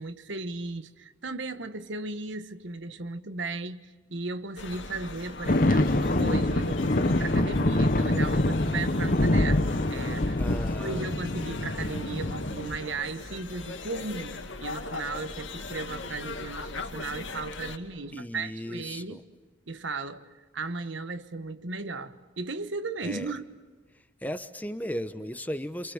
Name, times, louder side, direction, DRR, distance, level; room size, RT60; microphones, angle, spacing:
voice 1, 0.0-10.4 10.8-19.2 19.7-23.4, right 3 dB, 70° right, 1.3 m, -36 dB
sound 1, 4.6-17.8, left 3 dB, 70° left, 2.4 m, -40 dB
sound 2, 5.5-12.8, left 1 dB, 45° left, 1.0 m, -25 dB
voice 2, 10.4-11.1 18.1-19.2 23.0-23.3 23.9-25.9, equal, 10° left, 1.0 m, -36 dB
28.0 x 27.5 x 7.3 m
head